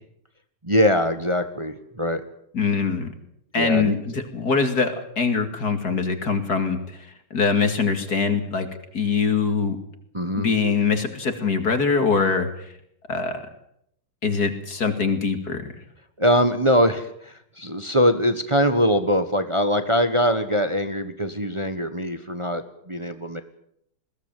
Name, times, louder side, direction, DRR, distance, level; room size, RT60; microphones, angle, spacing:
voice 1, 0.6-2.2 3.5-4.0 10.1-10.5 16.2-23.4, equal, 20° right, 9 dB, 1.0 m, -22 dB
voice 2, 2.5-3.1 3.5-8.7 8.9-9.8 10.3-12.7 13.1-13.4 14.2-15.7, left 5 dB, 45° left, 7 dB, 2.7 m, -23 dB
21.5 x 16.5 x 9.1 m, 0.73 s
omnidirectional pair, 2.3 m